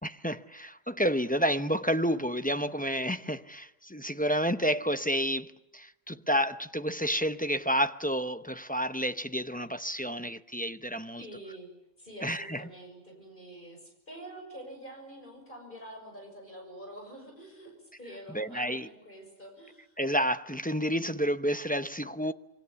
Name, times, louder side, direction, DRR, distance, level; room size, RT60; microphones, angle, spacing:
voice 1, 0.0-11.2 12.2-12.7 18.3-18.9 20.0-22.3, equal, 10° left, 0.6 m, -30 dB
voice 2, 11.2-17.7 18.0-20.0, right 1 dB, 40° left, 6.6 m, -46 dB
27.5 x 24.0 x 7.1 m
omnidirectional pair, 1.3 m